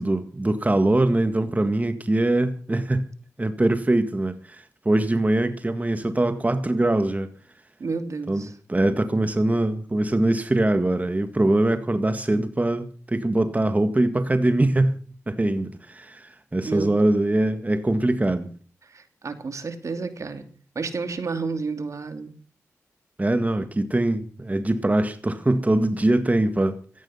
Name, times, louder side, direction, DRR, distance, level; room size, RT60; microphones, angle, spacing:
voice 1, 0.0-3.1 3.4-7.3 8.3-15.0 15.3-18.5 23.2-26.8, right 1 dB, 25° right, 1.8 m, -22 dB
voice 2, 7.8-8.5 16.6-16.9 18.8-20.5 20.7-22.3, right 4 dB, 65° right, 2.7 m, -31 dB
17.0 x 14.0 x 5.7 m
cardioid pair, 45°, 6 cm